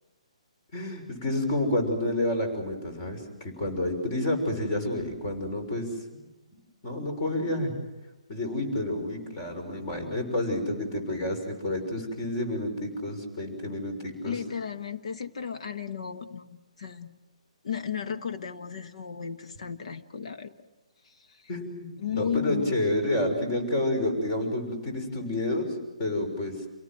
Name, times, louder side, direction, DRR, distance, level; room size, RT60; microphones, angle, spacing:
voice 1, 0.7-6.2 6.8-7.7 8.3-14.3 21.5-26.5, left 1 dB, 35° left, 5 dB, 6.2 m, -29 dB
voice 2, 14.2-17.1 17.6-20.5 22.0-22.8, left 7 dB, 65° left, 8 dB, 1.5 m, -34 dB
28.5 x 18.5 x 7.7 m, 1.1 s
figure-of-eight pair, 140°, 4 cm